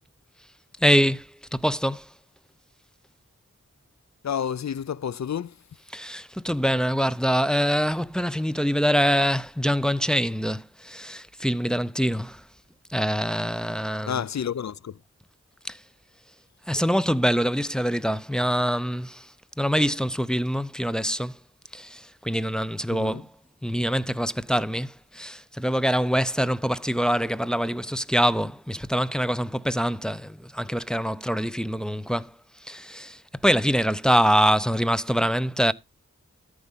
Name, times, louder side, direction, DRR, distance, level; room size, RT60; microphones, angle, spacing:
voice 1, 0.8-2.1 5.9-12.4 12.9-14.1 15.6-15.8 16.7-19.3 19.6-21.4 21.7-23.3 23.6-32.3 32.6-35.7, equal, ahead, 0.7 m, -24 dB
voice 2, 4.2-5.6 14.1-15.0 22.9-23.2, left 8 dB, 65° left, 0.5 m, -30 dB
13.5 x 4.9 x 5.7 m
wide cardioid pair, 45°, 30 cm